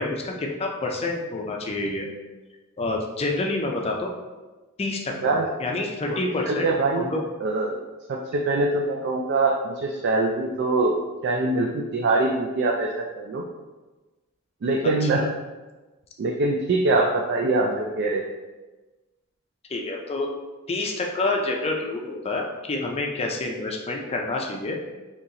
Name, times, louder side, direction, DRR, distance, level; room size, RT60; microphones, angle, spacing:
voice 1, 0.0-2.1 2.8-4.1 4.8-6.7 7.0-7.2 15.0-15.3 19.7-20.3 20.7-24.8, left 2 dB, 30° left, 1 dB, 0.5 m, -28 dB
voice 2, 6.5-7.0 7.4-7.8 8.1-10.9 11.2-13.4 14.6-15.2 16.2-18.2, right 2 dB, 55° right, 0 dB, 0.3 m, -23 dB
3.9 x 2.9 x 2.8 m, 1.2 s
head